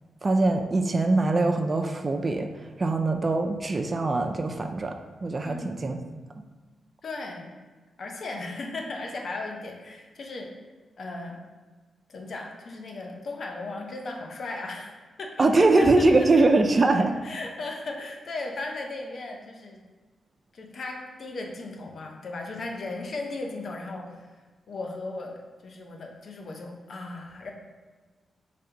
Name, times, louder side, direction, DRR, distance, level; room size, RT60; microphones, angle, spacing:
voice 1, 0.2-2.5 2.8-5.0 5.2-6.0 15.4-17.1, right 2 dB, 35° right, 4 dB, 0.4 m, -22 dB
voice 2, 5.4-5.9 7.0-7.6 8.0-10.5 11.0-11.4 12.1-14.9 15.2-16.3 17.2-19.8 20.5-24.3 24.7-27.5, left 2 dB, 60° left, 1 dB, 0.8 m, -36 dB
5.1 x 3.3 x 2.9 m, 1.3 s
cardioid pair, 65°, 0 cm